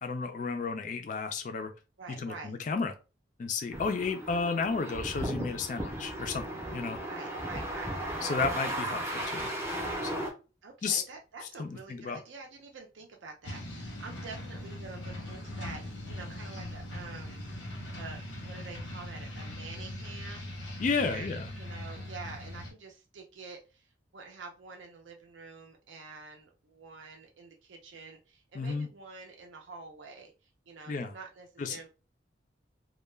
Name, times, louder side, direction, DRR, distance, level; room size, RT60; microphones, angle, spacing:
voice 1, 0.0-1.7 2.1-2.9 3.4-7.0 8.2-9.5 10.1-10.3 10.8-11.0 11.6-12.2 20.8-21.5 28.5-28.9 30.9-31.1 31.6-31.8, left 4 dB, 40° left, 0.3 m, -32 dB
voice 2, 2.0-2.5 7.1-8.0 10.6-17.7 18.0-23.9 24.1-30.3 30.7-31.9, right 4 dB, 80° right, 0.5 m, -47 dB
sound 1, 3.7-10.3, right 1 dB, 15° right, 0.5 m, -35 dB
sound 2, 13.4-22.7, left 1 dB, 90° left, 0.8 m, -40 dB
2.2 x 2.1 x 3.1 m
head